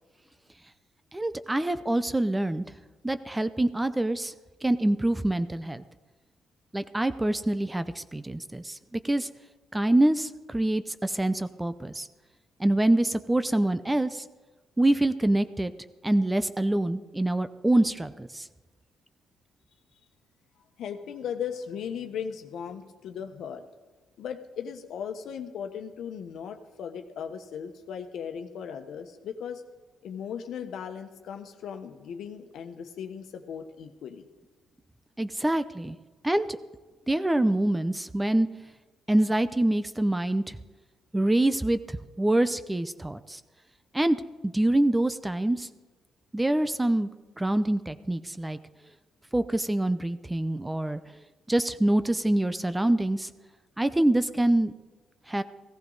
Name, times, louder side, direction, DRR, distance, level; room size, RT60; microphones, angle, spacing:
voice 1, 1.1-2.6 3.0-4.3 4.6-5.8 6.7-9.3 9.7-12.1 12.6-14.2 14.8-15.7 16.0-18.5 35.2-36.0 36.2-36.6 37.1-38.5 39.1-40.6 41.1-43.4 43.9-44.2 44.4-45.7 46.3-47.1 47.4-48.6 49.3-51.0 51.5-53.3 53.8-54.7 55.3-55.4, right 1 dB, 10° right, 12 dB, 0.6 m, -25 dB
voice 2, 20.8-23.6 24.2-29.6 30.0-34.2, left 7 dB, 75° left, 7 dB, 1.2 m, -37 dB
16.0 x 14.5 x 4.0 m, 1.2 s
cardioid pair, 90°, 0 cm